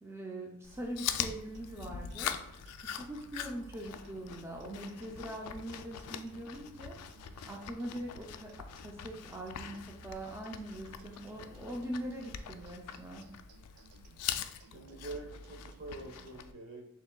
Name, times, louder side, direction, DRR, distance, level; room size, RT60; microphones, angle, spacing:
voice 1, 0.0-2.3 2.8-7.0 7.5-13.3, right 1 dB, 10° right, -1 dB, 0.4 m, -42 dB
Chewing mastication, 0.6-16.5, left 9 dB, 90° left, 0.3 m, -43 dB
sound 1, 1.1-16.5, right 4 dB, 90° right, 0.3 m, -58 dB
voice 2, 14.7-16.9, right 2 dB, 60° right, 0 dB, 1.0 m, -45 dB
6.7 x 2.8 x 2.2 m, 0.76 s
head